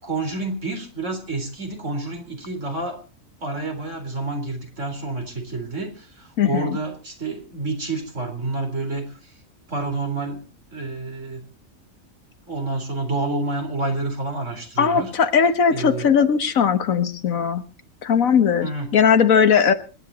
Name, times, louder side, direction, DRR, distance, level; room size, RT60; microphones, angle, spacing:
voice 1, 0.0-3.0 3.4-9.4 9.7-10.4 10.7-11.4 12.5-15.1 15.7-16.1 18.6-18.9, right 3 dB, 65° right, 4 dB, 4.3 m, -29 dB
voice 2, 6.4-6.7 14.8-17.6 18.0-19.7, left 7 dB, 90° left, 10 dB, 1.7 m, -18 dB
26.5 x 10.5 x 4.2 m, 0.36 s
omnidirectional pair, 1.4 m